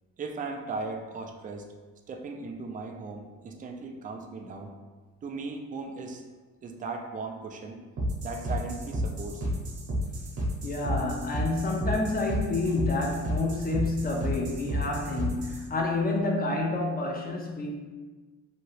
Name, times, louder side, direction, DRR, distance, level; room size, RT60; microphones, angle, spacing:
voice 1, 0.2-1.7 2.1-4.7 5.2-6.2 6.6-7.8 8.2-9.6, right 3 dB, 30° right, 3 dB, 0.4 m, -37 dB
sound 1, 8.0-15.6, equal, 55° right, 0.9 m, -31 dB
voice 2, 10.6-17.7, left 2 dB, 30° left, 0 dB, 0.6 m, -29 dB
2.8 x 2.3 x 3.1 m, 1.3 s
cardioid pair, 90°, 30 cm